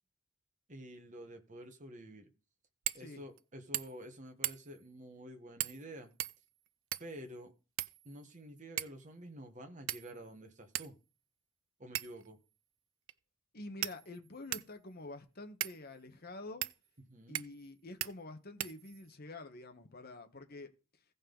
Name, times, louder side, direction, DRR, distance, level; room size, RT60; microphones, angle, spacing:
voice 1, 0.7-2.3 2.9-6.1 7.0-7.5 8.0-11.0 11.8-12.4 17.1-17.4, right 1 dB, 35° right, 1.2 m, -49 dB
sound 1, 2.8-3.1 3.4-3.5 3.7-4.1 4.4-4.8 5.6-5.8 6.2-7.2 7.8-8.4 8.8-9.0 9.9-10.3 10.7-10.9 11.9-12.3 13.1-13.2 13.8-14.7 15.6-15.8 16.6-16.8 17.3-17.7 18.0-18.1 18.6-19.2, right 15 dB, 60° right, 0.4 m, -39 dB
voice 2, 13.5-16.7 17.3-20.7, left 2 dB, 45° left, 1.1 m, -48 dB
16.0 x 5.4 x 3.9 m
head